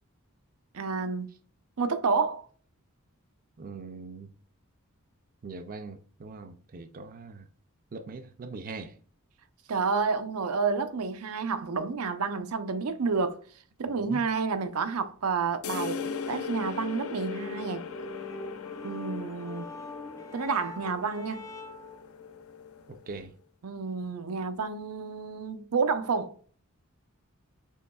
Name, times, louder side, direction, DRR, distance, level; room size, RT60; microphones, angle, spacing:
voice 1, 0.7-1.3 1.8-2.4 9.7-13.4 13.8-17.8 18.8-19.7 20.3-21.4 23.6-26.3, right 5 dB, 90° right, 0.6 m, -30 dB
voice 2, 3.6-4.3 5.4-7.5 7.9-9.0 13.9-14.2 22.9-23.3, right 3 dB, 40° right, 0.4 m, -41 dB
sound 1, 15.6-23.2, left 5 dB, 70° left, 0.5 m, -39 dB
sound 2, 17.0-22.0, left 2 dB, 15° left, 0.4 m, -43 dB
6.5 x 3.0 x 2.3 m
head